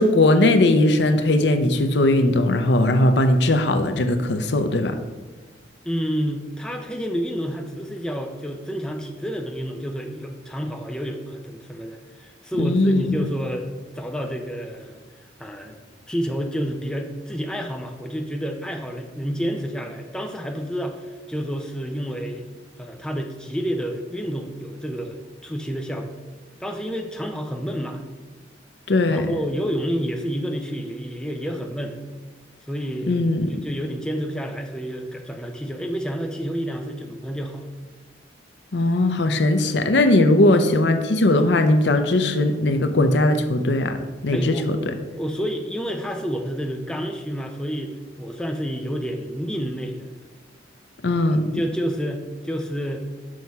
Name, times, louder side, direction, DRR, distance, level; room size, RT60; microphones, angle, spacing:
voice 1, 0.0-5.0 12.6-13.2 28.9-29.4 33.1-33.5 38.7-44.0 44.2-44.9 51.0-51.5, left 1 dB, 65° left, 8 dB, 0.6 m, -19 dB
voice 2, 5.8-15.0 15.4-15.8 16.1-22.5 22.8-26.1 26.6-28.0 29.0-32.0 32.7-37.7 44.3-50.1 51.3-53.0, equal, 5° left, 3 dB, 0.5 m, -29 dB
6.2 x 5.5 x 4.7 m, 1.3 s
head